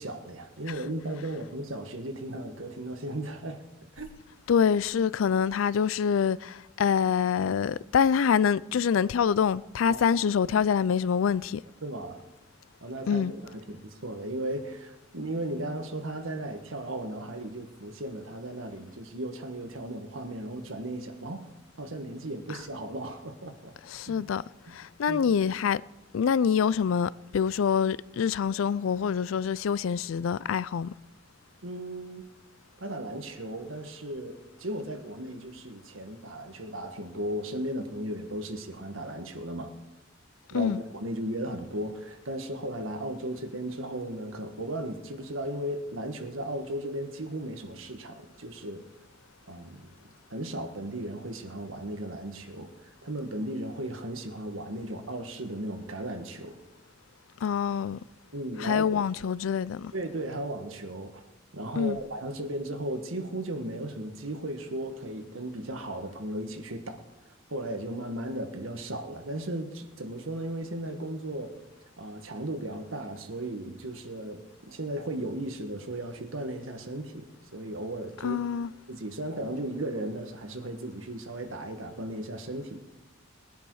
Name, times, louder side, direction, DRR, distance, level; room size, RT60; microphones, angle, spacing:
voice 1, 0.0-4.1 9.9-10.0 11.8-12.2 12.8-21.5 21.8-23.7 24.1-24.3 24.7-24.8 25.1-25.2 31.6-32.3 32.8-39.7 40.5-48.8 49.5-49.9 50.3-56.6 58.3-59.1 59.9-61.2 61.5-67.0 67.3-71.5 72.0-74.4 74.7-77.2 77.5-78.4 78.9-82.8, right 1 dB, 85° right, 1.6 m, -36 dB
voice 2, 4.5-11.6 13.1-13.3 23.9-24.4 24.7-25.8 26.1-30.9 40.5-40.8 57.4-58.0 58.6-59.9 61.8-62.0 78.2-78.7, left 7 dB, 80° left, 0.4 m, -25 dB
20.0 x 10.0 x 4.8 m
head